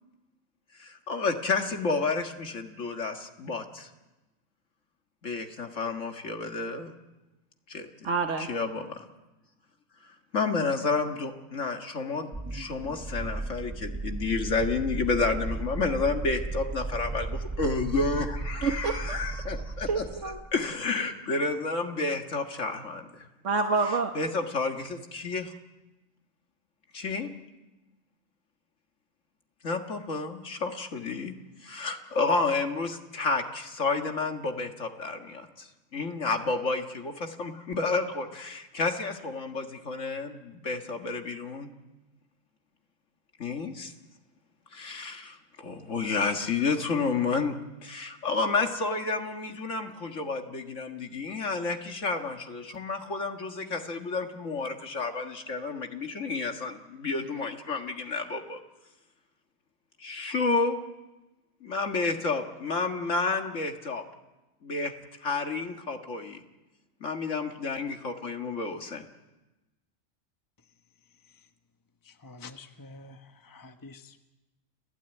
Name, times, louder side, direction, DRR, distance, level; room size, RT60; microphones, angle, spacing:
voice 1, 0.8-3.9 5.2-6.9 7.7-7.9 8.4-8.8 10.0-20.0 20.5-23.3 24.2-25.5 26.9-27.3 29.6-31.3 31.6-41.7 43.4-43.9 44.7-47.6 47.8-58.6 60.0-60.8 61.6-64.0 64.6-64.9 65.2-66.4 67.0-69.1, left 4 dB, 70° left, 4 dB, 2.1 m, -30 dB
voice 2, 8.0-8.5 18.6-19.2 19.9-20.4 23.4-24.1, right 4 dB, 65° right, 4 dB, 1.7 m, -27 dB
sound 1, 12.3-20.5, right 3 dB, 15° right, 0.6 m, -35 dB
voice 3, 72.0-74.2, left 3 dB, 15° left, 7 dB, 1.1 m, -48 dB
30.0 x 17.0 x 9.1 m, 1.1 s
omnidirectional pair, 1.4 m